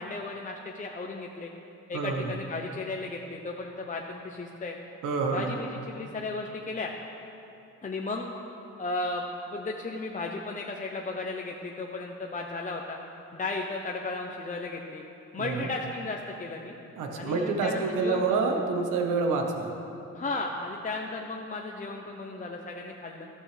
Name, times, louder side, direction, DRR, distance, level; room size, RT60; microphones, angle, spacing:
voice 1, 0.0-1.5 1.9-4.8 5.3-6.9 7.8-8.3 8.8-9.2 9.5-13.0 13.3-15.0 15.3-16.7 17.2-18.5 20.1-23.3, left 3 dB, 25° left, 1 dB, 0.8 m, -35 dB
voice 2, 1.9-2.3 5.0-5.6 15.4-15.7 16.9-19.7, right 4 dB, 85° right, 2 dB, 1.3 m, -27 dB
14.0 x 12.5 x 3.4 m, 2.9 s
cardioid pair, 90°, 30 cm